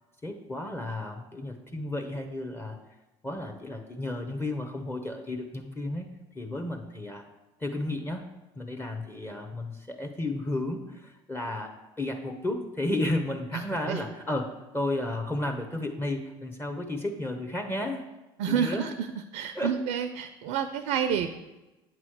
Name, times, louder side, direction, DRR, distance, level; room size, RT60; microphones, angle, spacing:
voice 1, 0.2-2.8 3.2-6.1 6.3-7.2 7.6-8.2 8.5-11.7 12.0-18.0 18.5-18.9 19.5-19.8, left 1 dB, 20° left, 4 dB, 0.9 m, -33 dB
voice 2, 13.5-14.0 18.4-19.1 19.3-21.3, right 8 dB, 80° right, 9 dB, 0.4 m, -29 dB
8.4 x 3.0 x 6.3 m, 1.1 s
supercardioid pair, 75°, 12 cm